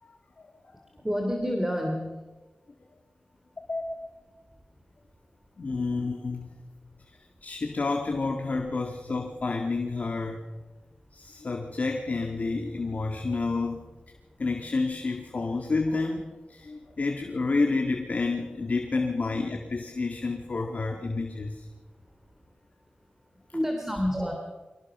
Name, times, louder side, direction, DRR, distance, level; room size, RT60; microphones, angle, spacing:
voice 1, 1.0-2.1 23.5-24.3, equal, 10° right, 2 dB, 3.2 m, -28 dB
voice 2, 3.7-4.1 5.6-6.5 7.4-10.4 11.1-13.9 14.4-21.7, left 3 dB, 55° left, 3 dB, 2.1 m, -29 dB
24.5 x 18.0 x 6.2 m, 1.2 s
wide cardioid pair, 70°, 3 cm